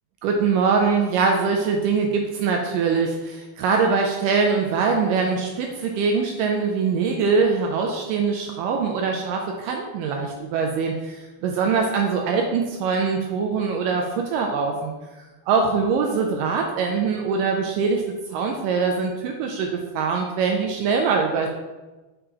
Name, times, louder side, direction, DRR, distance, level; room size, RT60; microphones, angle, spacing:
voice 1, 0.2-14.9 15.5-18.0 18.3-21.5, right 5 dB, 85° right, 2 dB, 2.0 m, -23 dB
6.7 x 5.1 x 2.9 m, 1.1 s
omnidirectional pair, 4.3 m